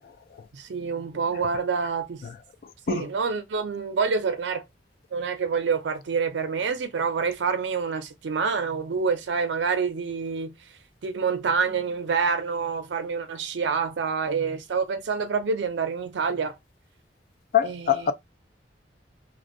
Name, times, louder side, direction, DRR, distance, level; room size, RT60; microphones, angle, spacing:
voice 1, 0.5-2.2 2.9-4.6 5.1-10.5 11.0-16.6 17.6-18.1, right 5 dB, 80° right, 0.4 m, -27 dB
voice 2, 17.5-18.1, left 9 dB, 55° left, 0.3 m, -23 dB
2.5 x 2.1 x 2.4 m
head